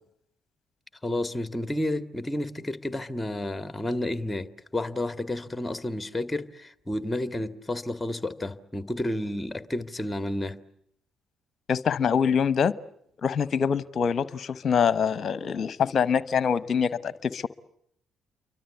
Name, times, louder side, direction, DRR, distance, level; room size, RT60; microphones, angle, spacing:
voice 1, 1.0-10.6, left 1 dB, 15° left, 2.0 m, -31 dB
voice 2, 11.7-12.7 13.2-17.5, left 7 dB, 50° left, 1.0 m, -24 dB
28.5 x 24.0 x 8.2 m
figure-of-eight pair, 40°, 0 cm